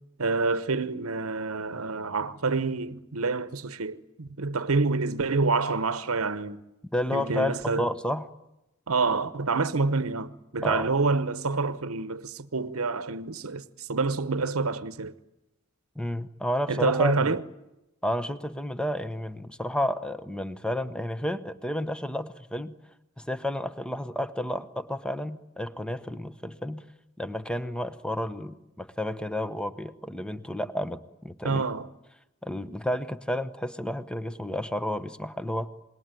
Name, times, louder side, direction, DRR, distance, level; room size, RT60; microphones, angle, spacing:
voice 1, 0.2-6.6 7.1-7.9 8.9-15.1 16.7-17.4 31.4-31.9, right 4 dB, 85° right, 1.0 m, -27 dB
voice 2, 6.9-8.3 10.6-10.9 15.9-17.4 18.0-22.7 23.2-26.8 27.2-31.6 32.4-35.7, left 1 dB, 5° left, 1.0 m, -31 dB
27.0 x 21.0 x 9.2 m
head